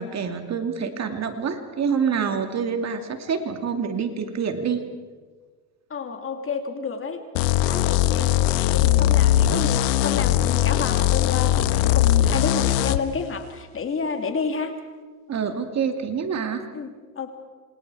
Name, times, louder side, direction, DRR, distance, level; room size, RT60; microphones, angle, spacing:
voice 1, 0.0-4.8 15.3-16.7, right 6 dB, 30° right, 6 dB, 2.4 m, -26 dB
voice 2, 5.9-7.2 7.6-14.8 16.7-17.3, left 5 dB, 25° left, 6 dB, 2.7 m, -30 dB
sound 1, 7.4-13.0, left 12 dB, 75° left, 1.3 m, -20 dB
28.0 x 26.0 x 4.8 m, 1.4 s
supercardioid pair, 115°, 50 cm